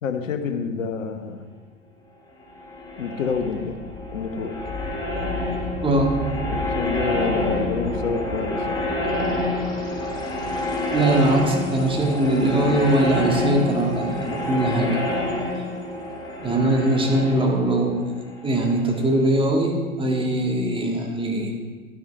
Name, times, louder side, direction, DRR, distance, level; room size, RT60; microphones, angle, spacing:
voice 1, 0.0-1.4 3.0-3.8 4.1-4.5 6.5-8.8 12.6-12.8 17.6-17.7, left 5 dB, 70° left, 7 dB, 1.2 m, -28 dB
sound 1, 2.5-19.2, left 1 dB, 10° left, 2.3 m, -28 dB
voice 2, 5.8-6.1 10.9-15.0 16.4-17.9 18.4-21.5, right 1 dB, 15° right, 0 dB, 1.9 m, -21 dB
12.0 x 9.6 x 4.7 m, 1.5 s
figure-of-eight pair, 90°, 40 cm